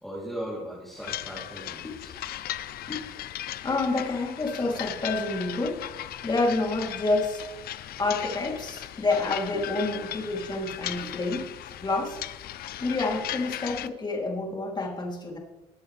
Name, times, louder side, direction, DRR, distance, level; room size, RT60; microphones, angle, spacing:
voice 1, 0.0-2.1, equal, ahead, -6 dB, 3.6 m, -38 dB
sound 1, 1.0-13.9, left 12 dB, 65° left, 0.7 m, -37 dB
voice 2, 3.6-5.8 6.2-7.4 8.0-12.2 12.8-15.4, left 2 dB, 25° left, 0 dB, 3.4 m, -28 dB
20.0 x 8.6 x 3.5 m, 1.1 s
cardioid pair, 110°, 17 cm